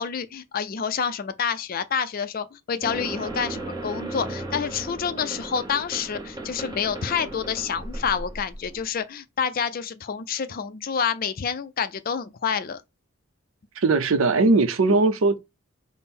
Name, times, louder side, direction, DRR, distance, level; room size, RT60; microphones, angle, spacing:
voice 1, 0.0-12.8, left 7 dB, 40° left, 0.3 m, -28 dB
sound 1, 2.8-8.8, right 2 dB, 20° right, 0.7 m, -35 dB
voice 2, 13.8-15.4, right 3 dB, 65° right, 0.6 m, -19 dB
5.3 x 2.0 x 4.2 m
head